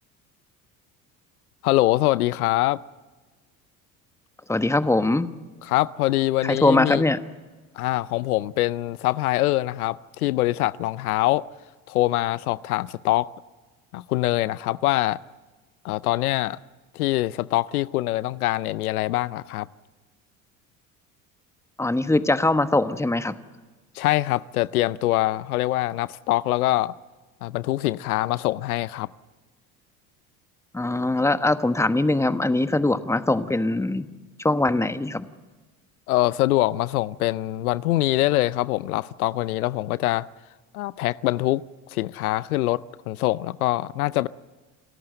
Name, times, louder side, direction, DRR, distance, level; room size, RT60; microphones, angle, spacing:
voice 1, 1.6-2.8 5.6-7.0 7.8-11.4 11.9-13.3 13.9-15.2 15.8-16.6 16.9-19.7 24.0-26.9 27.4-29.1 36.1-40.3 40.7-41.6 41.9-44.3, left 17 dB, 90° left, 0.6 m, -24 dB
voice 2, 4.5-5.3 6.4-7.2 21.8-23.3 30.7-34.1 34.4-35.2, left 2 dB, 5° left, 1.2 m, -22 dB
28.0 x 14.0 x 7.8 m
hypercardioid pair, 70°, 43 cm